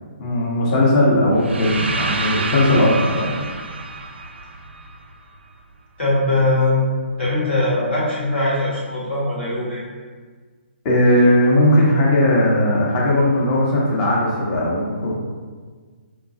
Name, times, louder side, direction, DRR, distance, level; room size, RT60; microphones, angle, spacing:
voice 1, 0.2-3.4 10.8-15.1, left 1 dB, 35° left, -4 dB, 0.9 m, -17 dB
sound 1, 1.3-5.4, right 3 dB, 75° right, 0.4 m, -28 dB
voice 2, 6.0-6.8 7.2-9.8, left 2 dB, 65° left, -6 dB, 1.5 m, -20 dB
4.8 x 2.3 x 2.6 m, 1.5 s
figure-of-eight pair, 140°, 6 cm